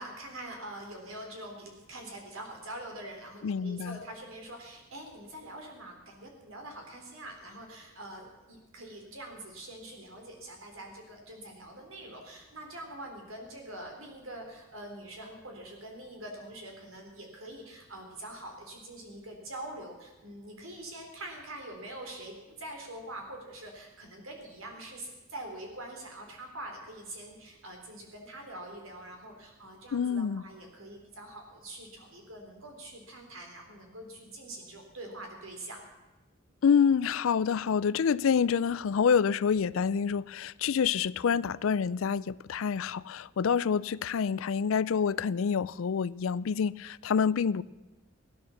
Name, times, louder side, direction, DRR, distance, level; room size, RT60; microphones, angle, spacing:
voice 1, 0.0-35.9, right 1 dB, 85° right, 3.7 m, -44 dB
voice 2, 3.4-4.0 29.9-30.4 36.6-47.6, left 6 dB, 80° left, 0.4 m, -27 dB
16.0 x 11.0 x 7.1 m
head